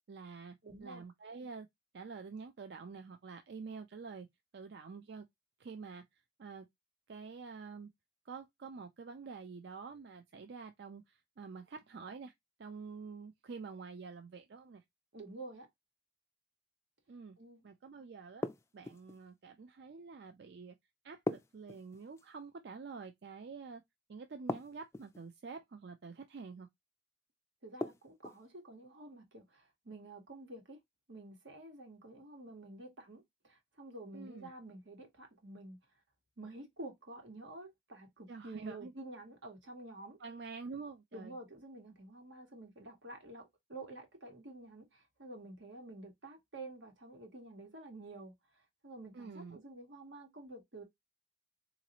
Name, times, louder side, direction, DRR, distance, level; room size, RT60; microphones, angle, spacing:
voice 1, 0.1-1.7 1.9-4.3 4.5-5.3 5.6-6.7 7.1-7.9 8.3-12.3 12.6-14.8 17.1-17.4 17.6-18.4 18.7-20.8 21.0-23.8 24.1-26.7 34.1-34.5 38.3-38.9 40.2-41.4 49.1-49.6, right 4 dB, 65° right, 0.4 m, -47 dB
voice 2, 0.6-1.0 15.1-15.7 17.4-17.6 27.6-30.8 31.1-35.8 36.4-40.2 41.1-48.3 48.8-50.8, right 2 dB, 90° right, 1.4 m, -50 dB
sound 1, 18.4-19.2 21.3-22.3 24.5-25.2 27.8-28.4, left 2 dB, 15° left, 0.3 m, -39 dB
3.9 x 2.6 x 2.9 m
head